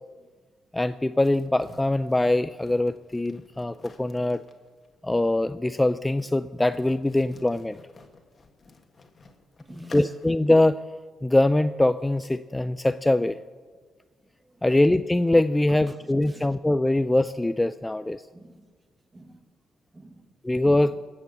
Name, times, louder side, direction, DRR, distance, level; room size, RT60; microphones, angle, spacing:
voice 1, 0.7-4.4 5.0-7.8 9.9-10.8 11.2-13.4 14.6-18.2 20.4-21.0, left 1 dB, 10° left, 12 dB, 0.3 m, -23 dB
sound 1, 1.2-10.5, left 3 dB, 35° left, 1.5 m, -51 dB
voice 2, 9.7-10.0 14.4-14.7 15.9-16.5 18.3-18.7 19.1-19.5 19.9-20.3 20.8-20.9, right 1 dB, 20° right, 9 dB, 1.2 m, -48 dB
17.5 x 7.2 x 8.0 m, 1.6 s
cardioid pair, 90°, 0 cm